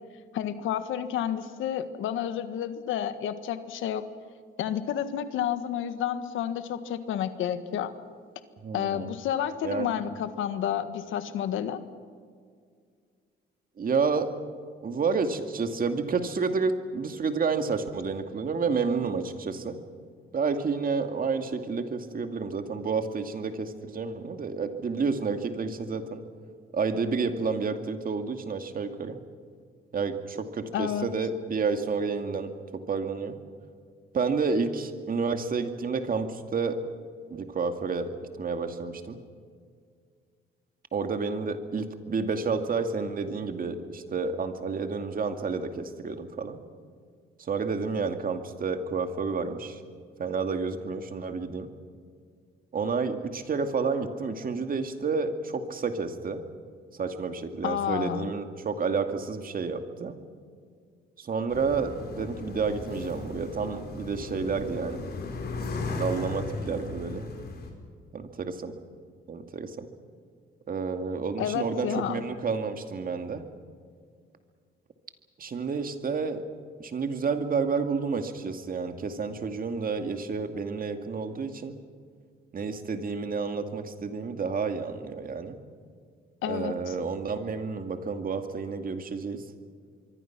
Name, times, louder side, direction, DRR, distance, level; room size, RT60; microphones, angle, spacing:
voice 1, 0.3-4.1 4.6-7.9 8.7-11.8 30.7-31.1 57.6-58.3 71.4-72.2 86.4-86.9, left 9 dB, 85° left, 11 dB, 1.6 m, -30 dB
voice 2, 8.6-9.1 9.6-9.9 13.8-14.3 14.8-19.8 20.3-26.2 26.7-29.2 29.9-33.4 34.1-36.9 37.3-39.2 40.9-46.6 47.4-49.8 50.2-51.7 52.7-56.4 56.9-60.2 61.2-65.0 66.0-67.3 68.1-68.7 69.3-69.9 70.7-73.5 75.4-76.5 76.8-81.8 82.5-85.6 86.5-89.5, right 5 dB, 45° right, 7 dB, 2.3 m, -30 dB
sound 1, 61.5-67.7, left 3 dB, 55° left, 5.3 m, -36 dB
26.0 x 23.0 x 6.1 m, 2.1 s
cardioid pair, 90°, 20 cm